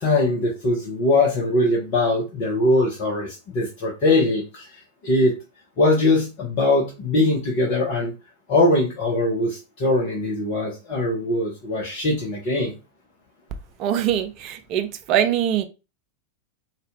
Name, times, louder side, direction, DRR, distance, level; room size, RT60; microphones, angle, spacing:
voice 1, 0.0-4.6 5.0-5.3 5.8-8.1 8.5-12.7, left 2 dB, 45° left, 1.1 m, -21 dB
voice 2, 13.8-15.6, right 10 dB, 40° right, 0.5 m, -23 dB
4.2 x 2.5 x 3.4 m
figure-of-eight pair, 90°, 0 cm